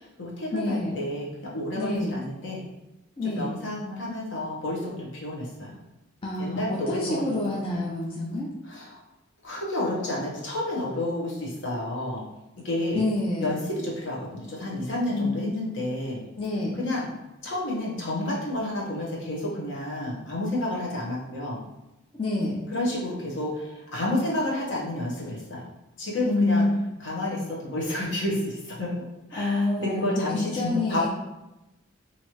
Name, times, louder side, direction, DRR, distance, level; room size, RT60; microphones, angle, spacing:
voice 1, 0.0-2.6 3.2-5.7 6.4-7.4 8.6-9.0 9.4-12.2 12.6-13.0 13.4-16.2 16.7-17.1 17.4-21.6 22.7-25.7 26.0-26.6 27.0-28.9 29.3-31.1, left 1 dB, 65° left, -4 dB, 1.0 m, -30 dB
voice 2, 0.5-0.9 1.7-2.1 3.2-3.5 6.2-8.5 12.9-13.6 15.1-15.3 16.4-16.8 22.1-22.6 26.2-26.7 29.3-30.1 30.3-31.1, left 2 dB, 25° left, -4 dB, 0.4 m, -27 dB
3.1 x 2.6 x 2.9 m, 0.97 s
head